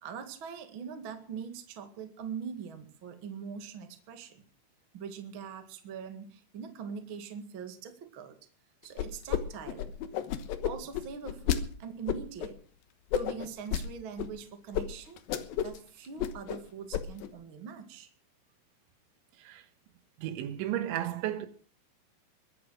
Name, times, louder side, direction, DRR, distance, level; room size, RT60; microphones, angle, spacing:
voice 1, 0.0-4.4 4.9-8.4 8.8-9.9 10.6-12.6 13.1-15.2 15.6-18.1, right 6 dB, 45° right, 1.6 m, -42 dB
sound 1, 9.0-9.4 9.7-11.6 12.1-12.5 13.1-13.8 14.2-14.3 14.7-14.8 15.2-15.8 16.0-16.6 16.9-17.3, left 10 dB, 70° left, 2.4 m, -31 dB
voice 2, 20.2-21.5, right 12 dB, 80° right, 3.4 m, -33 dB
22.0 x 8.5 x 6.4 m
omnidirectional pair, 5.5 m